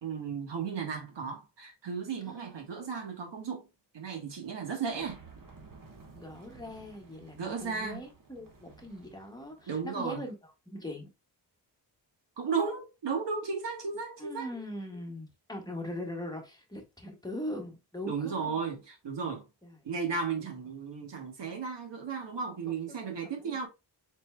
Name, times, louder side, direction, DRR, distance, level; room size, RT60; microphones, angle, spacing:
voice 1, 0.0-3.6 3.9-5.2 7.4-8.0 9.7-10.2 12.4-14.5 18.1-19.5 19.8-23.7, right 5 dB, 80° right, 1.4 m, -34 dB
voice 2, 2.2-2.7 6.1-11.1 14.2-18.6 19.6-19.8 20.4-20.5 22.6-23.0 23.4-23.7, left 1 dB, 10° left, 1.5 m, -41 dB
sound 1, 4.8-9.9, right 4 dB, 50° right, 1.4 m, -54 dB
4.3 x 4.2 x 2.3 m
wide cardioid pair, 85°, 42 cm